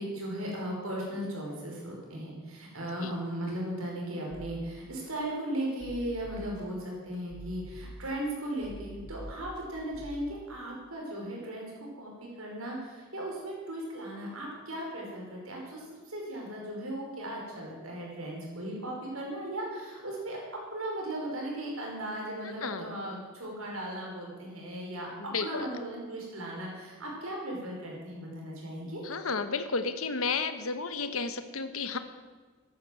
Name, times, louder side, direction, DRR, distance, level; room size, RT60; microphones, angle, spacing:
voice 1, 0.0-11.7 12.0-20.4 20.7-29.0, right 1 dB, 90° right, -2 dB, 5.4 m, -37 dB
sound 1, 4.3-4.5 5.0-5.1 5.6-6.6 7.1-8.3 8.6-9.6 9.9-10.2, equal, 50° left, 4.2 m, -45 dB
voice 2, 22.4-23.0 25.2-25.7 29.0-32.0, left 4 dB, 80° left, 10 dB, 1.3 m, -32 dB
14.5 x 11.5 x 7.7 m, 1.4 s
head